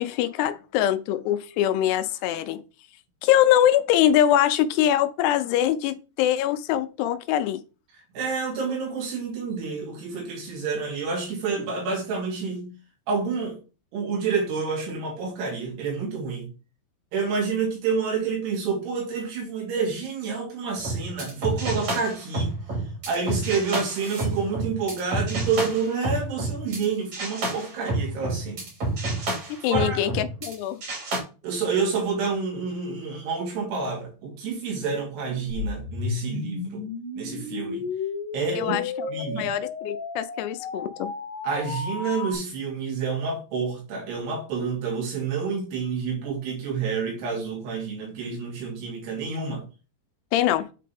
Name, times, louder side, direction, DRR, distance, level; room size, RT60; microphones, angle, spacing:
voice 1, 0.0-2.6 3.2-7.6 29.5-30.8 38.6-38.8 39.4-41.1 50.3-50.7, left 11 dB, 85° left, 2.7 m, -23 dB
voice 2, 8.1-12.7 13.1-13.6 13.9-16.5 17.1-22.5 23.1-28.6 29.7-30.0 31.4-36.8 37.2-37.8 38.3-38.8 39.1-39.5 41.4-49.6, right 5 dB, 80° right, 4.3 m, -28 dB
sound 1, 20.8-26.8 27.1-30.5 30.8-31.2, right 2 dB, 45° right, 3.9 m, -29 dB
sound 2, 35.5-42.3, left 5 dB, 70° left, 2.0 m, -33 dB
8.5 x 4.2 x 3.4 m
omnidirectional pair, 4.7 m